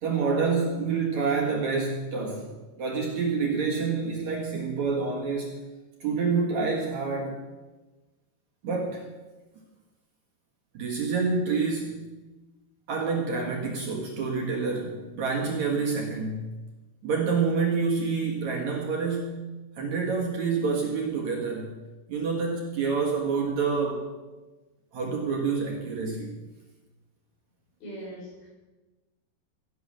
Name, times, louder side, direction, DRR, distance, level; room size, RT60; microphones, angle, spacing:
voice 1, 0.0-2.5 2.8-5.5 6.0-7.4 8.6-9.0 10.7-12.0 12.9-16.5 17.0-19.4 19.8-21.7 22.1-24.1 24.9-26.3, right 4 dB, 55° right, -1 dB, 2.7 m, -27 dB
voice 2, 27.8-28.5, right 1 dB, 65° left, -4 dB, 7.7 m, -40 dB
16.5 x 9.4 x 6.5 m, 1.2 s
omnidirectional pair, 4.6 m